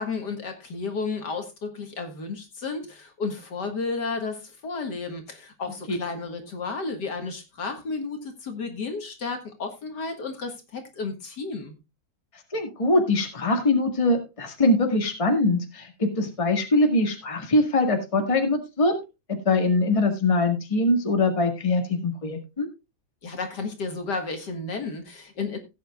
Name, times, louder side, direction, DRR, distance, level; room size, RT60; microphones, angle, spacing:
voice 1, 0.0-11.7 23.2-25.6, left 4 dB, 60° left, 5 dB, 2.1 m, -32 dB
voice 2, 12.5-18.9 19.3-22.7, left 2 dB, 15° left, 4 dB, 1.7 m, -23 dB
17.0 x 8.6 x 2.3 m, 0.25 s
omnidirectional pair, 2.2 m